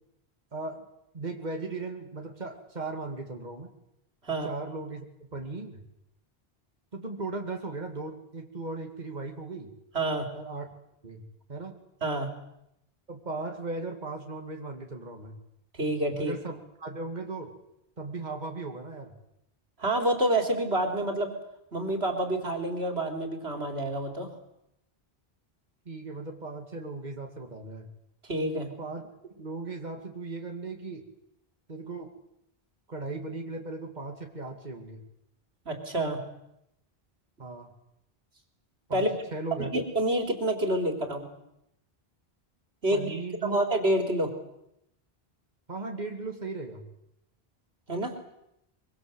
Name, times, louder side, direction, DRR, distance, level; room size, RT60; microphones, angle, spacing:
voice 1, 0.5-0.9 1.1-3.7 4.3-5.8 6.9-9.7 10.3-10.7 11.0-11.2 11.5-11.8 13.1-15.4 16.2-17.5 18.0-19.1 25.9-27.9 28.5-31.0 31.7-32.1 32.9-35.0 37.4-37.7 38.9-39.1 39.3-39.7 42.9-43.6 45.7-46.9, right 3 dB, 45° right, 3 dB, 2.5 m, -37 dB
voice 2, 9.9-10.3 12.0-12.3 15.8-16.3 19.8-21.4 21.7-24.3 28.3-28.7 35.7-36.2 38.9-39.1 39.6-41.3 42.8-43.2 43.4-44.3 47.9-48.1, right 1 dB, 85° right, 5 dB, 4.1 m, -28 dB
24.0 x 24.0 x 8.0 m, 0.81 s
omnidirectional pair, 1.0 m